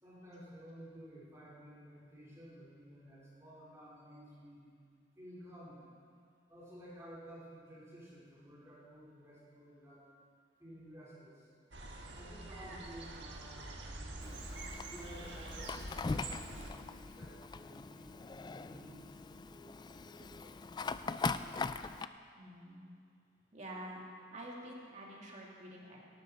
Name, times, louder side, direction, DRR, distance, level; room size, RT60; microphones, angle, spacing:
voice 1, 0.0-4.7 5.2-5.8 6.5-10.1 10.6-11.4 12.1-14.4 14.8-20.5, equal, 15° right, -7 dB, 4.0 m, -53 dB
sound 1, 11.7-16.7, right 2 dB, 65° right, 1.5 m, -46 dB
Fire, 14.2-22.1, left 4 dB, 25° left, 0.3 m, -41 dB
voice 2, 22.4-22.9 23.5-24.0 24.3-26.0, right 1 dB, 40° right, -3 dB, 2.3 m, -48 dB
17.5 x 12.5 x 4.2 m, 2.2 s
head